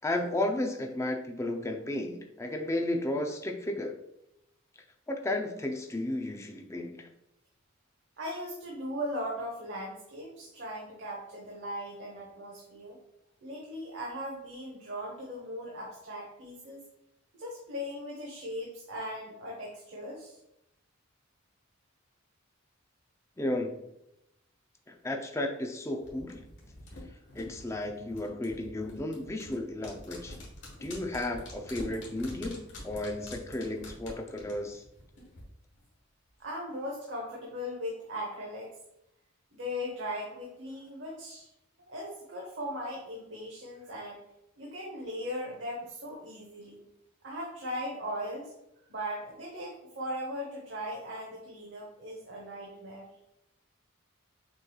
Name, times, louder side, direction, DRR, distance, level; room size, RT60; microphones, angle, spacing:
voice 1, 0.0-4.0 5.1-7.1 23.4-23.8 24.9-26.4 27.3-30.4 30.8-34.8, left 1 dB, 15° left, 2 dB, 0.5 m, -33 dB
voice 2, 8.2-13.0 13.4-16.8 17.3-20.4 36.4-38.7 39.5-41.5 41.8-44.2 44.6-46.8 47.2-48.5 48.9-53.1, equal, 60° right, -3 dB, 1.0 m, -38 dB
sound 1, 26.0-35.4 35.7-35.8, left 1 dB, 60° left, 1.5 m, -46 dB
6.4 x 3.1 x 2.3 m, 0.82 s
head